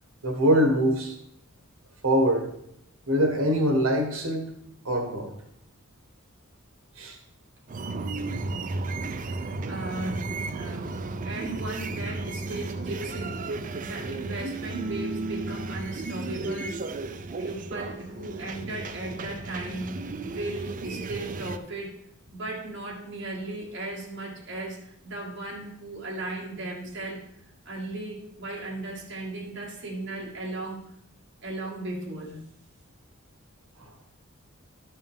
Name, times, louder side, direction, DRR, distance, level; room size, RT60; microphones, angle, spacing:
voice 1, 0.2-1.2 2.0-2.5 3.1-4.5 4.8-5.3 7.0-7.2, equal, 80° right, 3 dB, 1.6 m, -23 dB
sound 1, 7.7-21.6, right 3 dB, 40° right, 0.5 m, -34 dB
voice 2, 9.2-13.5 13.8-16.8 17.4-21.9 22.3-27.2 27.7-30.8 31.4-32.4, right 2 dB, 60° right, -4 dB, 2.1 m, -36 dB
11.5 x 5.5 x 3.6 m, 0.77 s
head